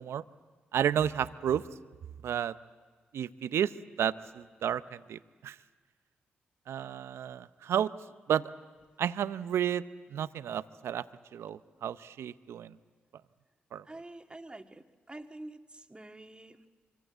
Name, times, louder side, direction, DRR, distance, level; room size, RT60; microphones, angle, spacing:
voice 1, 0.7-1.6 2.2-2.5 3.1-3.7 4.0-5.6 6.7-7.9 8.3-8.5 9.0-9.8 10.1-11.0 11.3-12.8 13.7-13.8, right 9 dB, 70° right, 14 dB, 0.7 m, -31 dB
voice 2, 13.8-16.6, right 2 dB, 20° right, 5 dB, 2.0 m, -47 dB
25.5 x 24.5 x 8.0 m, 1.4 s
hypercardioid pair, 40°, 5 cm